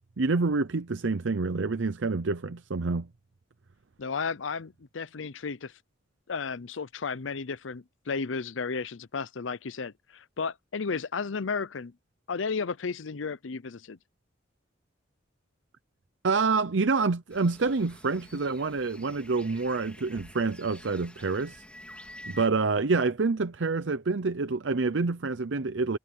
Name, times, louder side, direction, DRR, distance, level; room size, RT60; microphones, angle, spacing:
voice 1, 0.2-3.1 16.2-21.6 22.3-26.0, right 4 dB, 75° right, 0.7 m, -27 dB
voice 2, 4.0-5.7 6.3-11.9 12.3-14.0, left 5 dB, 85° left, 0.6 m, -33 dB
sound 1, 17.3-22.5, left 1 dB, 5° left, 3.6 m, -49 dB
head